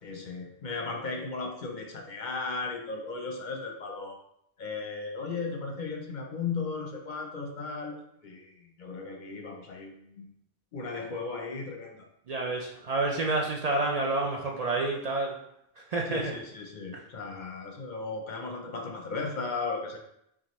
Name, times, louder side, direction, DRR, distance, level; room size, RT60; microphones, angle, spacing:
voice 1, 0.0-4.2 4.6-10.3 10.7-12.1 16.1-20.0, left 4 dB, 55° left, 2 dB, 0.7 m, -36 dB
voice 2, 12.3-15.3 15.8-16.4 16.9-17.0, right 2 dB, 50° right, -1 dB, 0.5 m, -29 dB
5.8 x 2.4 x 3.0 m, 0.77 s
omnidirectional pair, 1.0 m